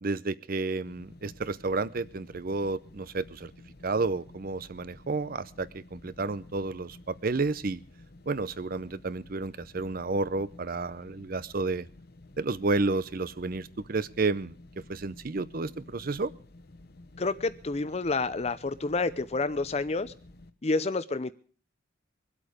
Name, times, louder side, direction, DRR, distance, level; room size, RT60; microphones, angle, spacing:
voice 1, 0.0-3.5 3.8-7.8 8.3-11.9 12.4-14.5 14.9-16.3, right 3 dB, 45° right, 0.6 m, -31 dB
sound 1, 0.8-20.5, left 2 dB, 50° left, 1.0 m, -52 dB
voice 2, 17.2-20.1 20.6-21.3, left 3 dB, 35° left, 0.6 m, -29 dB
24.0 x 8.4 x 5.0 m
head